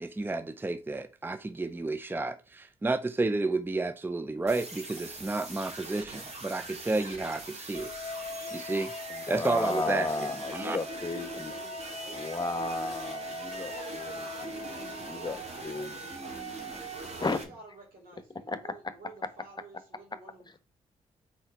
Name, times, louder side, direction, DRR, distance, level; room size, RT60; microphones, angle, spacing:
voice 1, 0.0-7.9 8.5-8.9 9.3-10.1 10.5-10.8, right 3 dB, 15° right, 0.5 m, -31 dB
sound 1, 4.5-17.4, right 3 dB, 45° right, 1.9 m, -42 dB
sound 2, 7.7-15.4, left 4 dB, 55° left, 0.7 m, -42 dB
voice 2, 8.0-8.6 9.4-13.1 13.5-16.4 16.9-20.6, right 3 dB, 75° right, 2.6 m, -51 dB
voice 3, 9.1-11.5 12.1-13.7 14.8-16.8 17.2-17.4 18.5-18.6, left 3 dB, 30° left, 1.1 m, -34 dB
4.4 x 4.3 x 5.5 m
hypercardioid pair, 45°, 15 cm